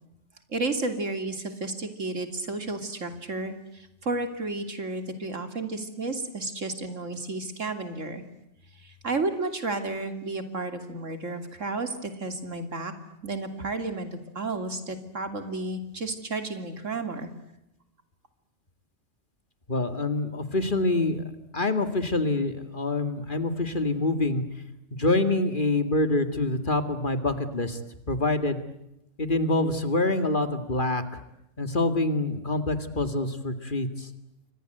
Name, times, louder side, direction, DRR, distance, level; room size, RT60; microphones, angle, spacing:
voice 1, 0.5-8.2 8.8-12.9 13.2-17.3, right 3 dB, 80° right, 8 dB, 3.3 m, -32 dB
voice 2, 19.7-21.2 21.5-24.4 24.9-27.8 28.1-28.6 29.2-31.2 31.6-34.1, left 2 dB, 40° left, 9 dB, 2.4 m, -26 dB
29.5 x 24.5 x 8.0 m, 0.87 s
omnidirectional pair, 1.3 m